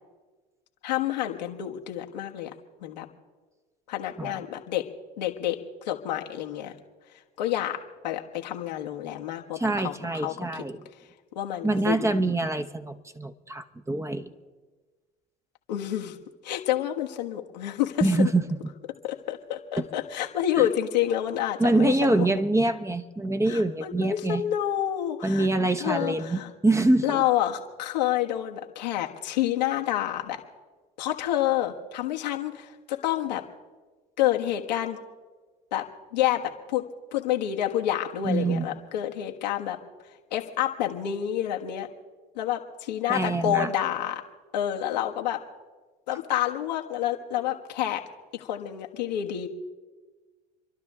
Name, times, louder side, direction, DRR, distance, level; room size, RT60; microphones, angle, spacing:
voice 1, 0.8-2.5 2.8-3.1 3.9-4.8 5.2-6.7 7.4-9.6 9.8-10.3 11.3-12.3 15.7-16.2 16.4-18.3 19.0-22.3 23.5-25.5 25.8-26.5 27.0-30.4 31.0-33.4 34.2-35.0 35.7-35.9 36.1-36.8 37.1-39.8 40.3-41.9 42.3-44.2 44.5-45.4 46.1-48.0 48.3-49.5, left 12 dB, 85° left, 2 dB, 1.4 m, -28 dB
voice 2, 9.5-10.8 11.6-14.3 18.0-18.7 19.8-19.9 20.6-20.7 21.6-24.4 25.2-27.2 38.2-38.9 43.1-43.7, right 2 dB, 15° right, 8 dB, 1.0 m, -25 dB
29.0 x 12.0 x 3.7 m, 1.3 s
hypercardioid pair, 70°, 21 cm